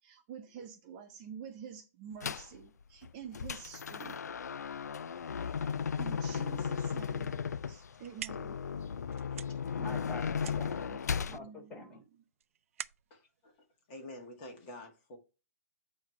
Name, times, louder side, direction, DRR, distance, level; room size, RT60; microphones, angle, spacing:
voice 1, 0.0-4.2 6.0-7.4 7.7-8.6 10.7-11.8, right 8 dB, 30° right, 1.1 m, -48 dB
sound 1, 2.2-2.6 3.0-11.4, left 6 dB, 85° left, 0.4 m, -36 dB
sound 2, 7.8-14.6, right 9 dB, 55° right, 0.4 m, -49 dB
voice 2, 9.5-10.8 11.3-12.0, left 2 dB, 15° left, 2.9 m, -46 dB
voice 3, 13.1-13.5 13.9-15.2, left 1 dB, 30° left, 1.8 m, -48 dB
8.8 x 3.2 x 5.7 m
hypercardioid pair, 150°, 9 cm